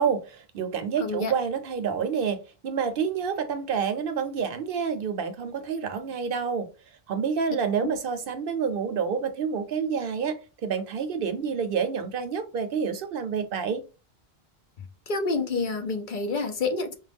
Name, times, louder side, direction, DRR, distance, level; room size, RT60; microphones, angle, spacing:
voice 1, 0.0-6.7 7.1-13.8, right 6 dB, 65° right, 0.7 m, -28 dB
voice 2, 1.0-1.3 7.8-7.9 15.1-16.9, left 3 dB, 55° left, 0.7 m, -28 dB
5.0 x 2.2 x 3.4 m
omnidirectional pair, 1.1 m